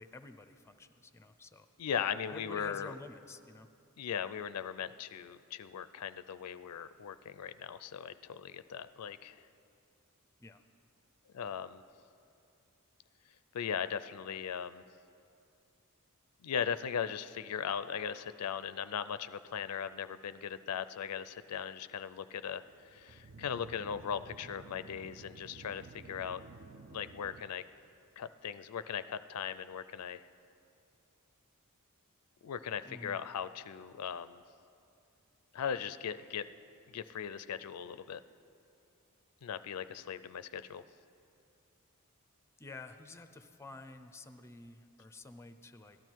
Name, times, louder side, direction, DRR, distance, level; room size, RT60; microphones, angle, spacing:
voice 1, 0.0-1.7 2.3-3.7 10.4-10.6 32.8-33.2 42.6-46.0, left 3 dB, 10° left, 9 dB, 0.5 m, -50 dB
voice 2, 1.8-2.9 4.0-9.4 11.3-11.8 13.5-14.8 16.4-26.4 26.9-27.6 28.2-30.2 32.4-34.4 35.5-36.5 36.9-38.2 39.4-40.8, left 8 dB, 90° left, 14 dB, 0.4 m, -38 dB
sound 1, 22.5-27.4, right 4 dB, 45° right, 0.4 m, -53 dB
17.5 x 12.5 x 4.6 m, 2.5 s
head